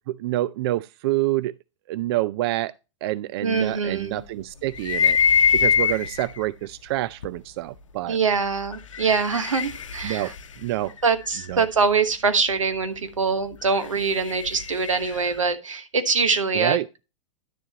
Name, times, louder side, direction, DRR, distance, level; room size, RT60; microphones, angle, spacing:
voice 1, 0.1-1.5 1.9-2.7 3.0-5.2 5.5-8.2 10.0-10.3 10.6-10.9 11.5-11.6 16.5-16.9, right 16 dB, 55° right, 0.4 m, -27 dB
voice 2, 3.4-4.2 8.1-10.3 11.0-17.0, right 5 dB, 85° right, 1.2 m, -24 dB
sound 1, 4.7-6.4 7.2-7.3 8.7-11.5 13.6-15.4, left 7 dB, 80° left, 0.8 m, -24 dB
11.0 x 7.1 x 2.8 m
hypercardioid pair, 100°, 16 cm